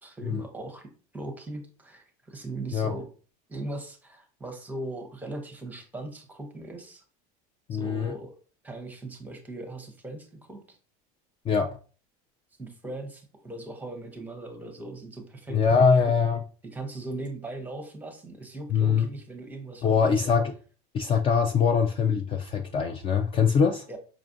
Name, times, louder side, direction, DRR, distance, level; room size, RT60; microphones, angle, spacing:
voice 1, 0.0-3.1 3.5-7.0 7.7-8.4 8.6-10.8 12.6-16.1 16.6-20.2 23.9-24.0, right 2 dB, 10° right, 5 dB, 0.7 m, -39 dB
voice 2, 7.7-8.1 11.5-11.7 15.5-16.4 18.7-19.1 19.8-20.4 20.9-23.8, left 6 dB, 30° left, 4 dB, 0.3 m, -23 dB
4.9 x 2.4 x 2.6 m, 0.38 s
supercardioid pair, 130°, 19 cm